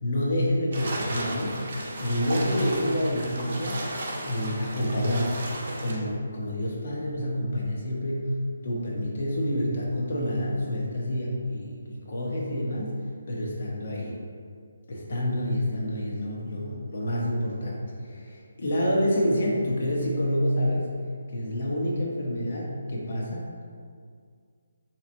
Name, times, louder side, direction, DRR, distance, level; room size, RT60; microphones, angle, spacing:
voice 1, 0.0-1.6 2.0-3.8 4.2-5.5 5.8-8.4 8.6-14.1 14.9-20.9 21.3-23.4, equal, 55° left, -3 dB, 0.9 m, -28 dB
sound 1, 0.7-6.0, right 1 dB, 55° right, 0.7 m, -34 dB
3.9 x 2.9 x 2.6 m, 2.1 s
figure-of-eight pair, 155°, 0 cm